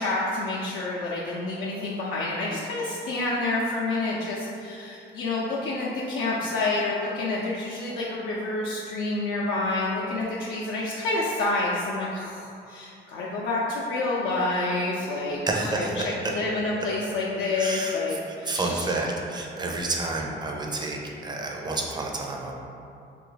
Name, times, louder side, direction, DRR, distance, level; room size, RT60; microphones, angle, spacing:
voice 1, 0.0-18.9, left 2 dB, 85° left, -5 dB, 0.4 m, -28 dB
voice 2, 15.5-16.3 17.5-18.0 18.3-22.5, right 2 dB, 20° right, 0 dB, 0.5 m, -29 dB
2.6 x 2.4 x 3.8 m, 2.6 s
cardioid pair, 90°, 20 cm